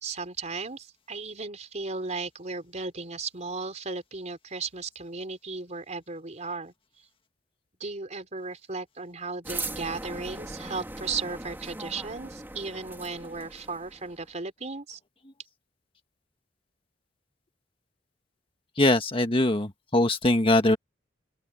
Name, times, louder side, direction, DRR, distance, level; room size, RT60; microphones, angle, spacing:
voice 1, 0.0-6.7 7.8-15.0, right 4 dB, 40° right, 4.1 m, -35 dB
sound 1, 9.4-14.3, right 2 dB, 10° right, 3.1 m, -39 dB
voice 2, 18.8-20.8, left 1 dB, 30° left, 1.8 m, -22 dB
open air
head